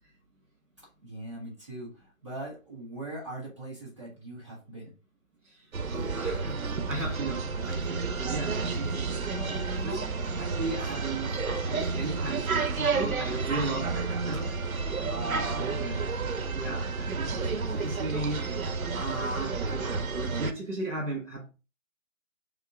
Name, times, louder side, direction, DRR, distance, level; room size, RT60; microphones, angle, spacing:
voice 1, 0.8-4.9 15.3-16.1, right 1 dB, 20° right, 1.2 m, -41 dB
voice 2, 5.4-6.6 6.9-14.6 15.1-16.0 16.5-21.5, right 2 dB, 60° right, 2.0 m, -36 dB
sound 1, 5.7-20.5, right 4 dB, 80° right, 0.8 m, -31 dB
3.7 x 3.6 x 3.7 m
hypercardioid pair, 175°, 42 cm